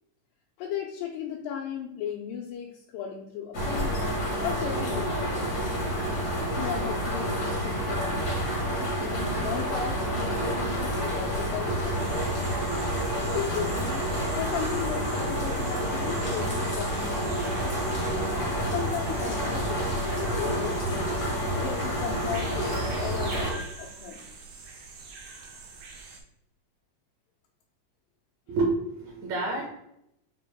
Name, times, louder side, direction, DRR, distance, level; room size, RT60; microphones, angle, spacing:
voice 1, 0.6-4.0 4.4-5.6 6.6-8.3 9.0-12.5 13.2-14.1 14.4-17.9 18.7-21.2 21.6-24.3, left 8 dB, 90° left, 0 dB, 2.2 m, -36 dB
sound 1, 3.5-23.5, equal, 70° left, 0.8 m, -29 dB
sound 2, 12.0-26.2, right 4 dB, 90° right, 2.4 m, -44 dB
voice 2, 28.5-29.7, right 3 dB, 70° right, -2 dB, 2.2 m, -28 dB
6.5 x 2.3 x 3.3 m, 0.77 s
omnidirectional pair, 3.8 m